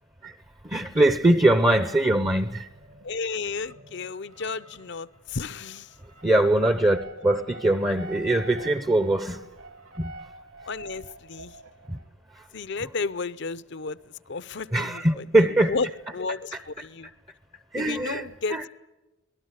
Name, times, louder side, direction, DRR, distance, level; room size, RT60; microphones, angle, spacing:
voice 1, 0.6-2.7 6.2-9.4 10.0-10.1 11.9-12.0 12.4-12.5 14.7-15.8 17.7-18.2 18.5-18.6, right 1 dB, 15° right, 0.7 m, -22 dB
sound 1, 2.6-3.1 3.4-12.1, right 2 dB, 70° right, 2.9 m, -46 dB
voice 2, 3.0-5.9 10.7-11.6 12.5-17.1 17.7-18.7, left 4 dB, 50° left, 0.7 m, -33 dB
25.0 x 19.0 x 8.2 m
head